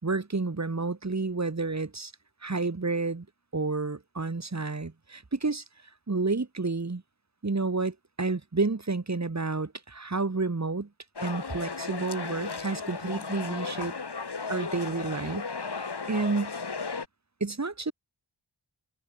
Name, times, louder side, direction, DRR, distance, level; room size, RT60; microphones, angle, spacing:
voice 1, 0.0-2.1 2.4-3.3 3.5-5.6 6.1-7.0 7.4-10.9 11.2-13.9 14.5-15.5 15.8-16.5 17.4-17.9, right 3 dB, 40° right, 3.5 m, -30 dB
sound 1, 11.2-17.1, left 4 dB, 65° left, 7.7 m, -35 dB
wide cardioid pair, 70°, 43 cm